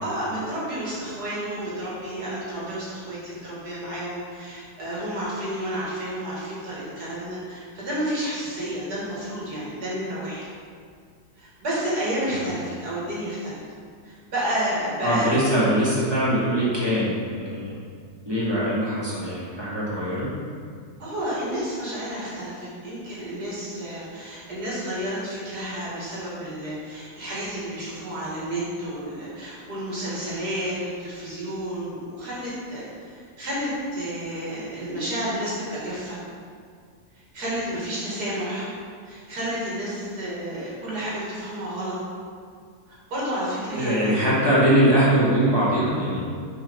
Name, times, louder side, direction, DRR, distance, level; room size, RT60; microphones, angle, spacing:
voice 1, 0.0-10.4 11.4-13.6 14.0-15.3 21.0-36.2 37.3-38.7 39.1-42.0 43.1-44.3, right 1 dB, 85° right, -8 dB, 2.6 m, -31 dB
voice 2, 15.0-17.7 18.3-20.3 43.8-46.2, right 1 dB, 15° right, -8 dB, 1.8 m, -22 dB
5.9 x 4.6 x 5.3 m, 2.1 s
omnidirectional pair, 1.6 m